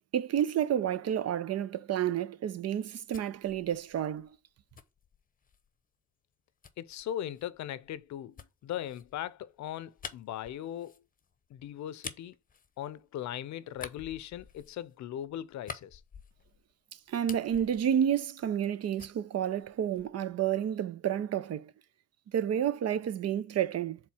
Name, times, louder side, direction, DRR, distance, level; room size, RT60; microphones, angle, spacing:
voice 1, 0.1-4.3 17.1-21.7 22.3-24.0, right 9 dB, 55° right, 0.6 m, -30 dB
sound 1, 2.7-5.7 6.6-13.3 13.7-16.7 17.0-18.7 19.0-20.3, left 6 dB, 30° left, 0.8 m, -49 dB
voice 2, 6.8-11.0 11.5-12.4 12.8-16.0, left 11 dB, 70° left, 0.6 m, -39 dB
4.6 x 3.8 x 5.6 m
cardioid pair, 90°, 30 cm